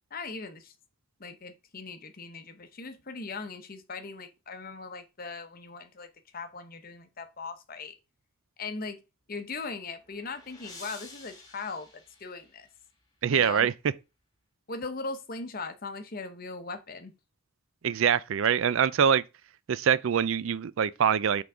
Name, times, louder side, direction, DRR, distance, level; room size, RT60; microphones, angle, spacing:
voice 1, 0.1-0.7 1.2-7.9 8.6-9.0 9.3-12.7 13.3-13.7 14.7-17.1, left 4 dB, 40° left, 0.8 m, -39 dB
sound 1, 9.6-13.0, left 3 dB, 15° left, 1.6 m, -50 dB
voice 2, 13.2-13.7 17.8-19.2 19.7-21.4, right 7 dB, 65° right, 0.4 m, -24 dB
5.9 x 3.8 x 4.9 m
head